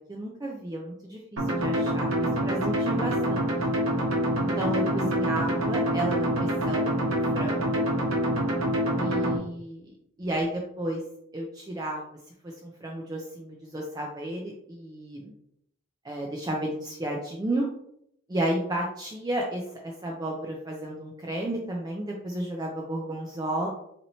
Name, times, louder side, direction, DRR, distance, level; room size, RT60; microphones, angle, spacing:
voice 1, 0.1-3.5 4.4-7.8 9.0-9.9 10.2-11.0 11.3-12.0 12.4-15.3 16.0-17.7 18.3-23.7, right 1 dB, 20° right, -1 dB, 0.4 m, -32 dB
sound 1, 1.4-9.4, equal, 75° right, 1.0 m, -26 dB
4.2 x 2.9 x 2.7 m, 0.73 s
head